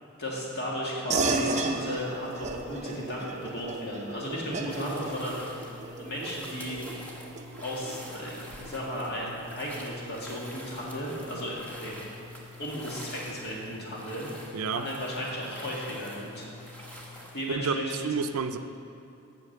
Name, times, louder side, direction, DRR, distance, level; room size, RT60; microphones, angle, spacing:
voice 1, 0.2-5.7 6.0-6.8 7.6-12.0 12.6-14.3 14.7-16.5 17.3-18.1, equal, 50° left, -4 dB, 2.2 m, -35 dB
sound 1, 1.1-11.0, right 3 dB, 30° right, 0.6 m, -35 dB
sound 2, 4.3-17.2, left 4 dB, 30° left, 0.9 m, -49 dB
sound 3, 4.7-17.5, equal, 5° left, 1.3 m, -47 dB
voice 2, 14.5-14.8 17.5-17.8 18.0-18.6, right 5 dB, 80° right, 9 dB, 0.5 m, -29 dB
8.6 x 7.1 x 6.7 m, 2.7 s
head